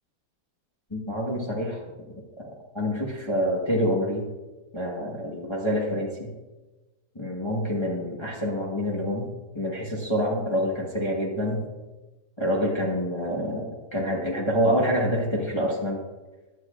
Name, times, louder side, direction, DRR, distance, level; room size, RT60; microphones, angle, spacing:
voice 1, 0.9-1.8 2.4-2.5 2.7-4.3 4.7-6.3 7.1-11.6 12.4-16.0, equal, 20° left, -3 dB, 0.9 m, -27 dB
11.0 x 8.2 x 2.4 m, 1.2 s
omnidirectional pair, 1.8 m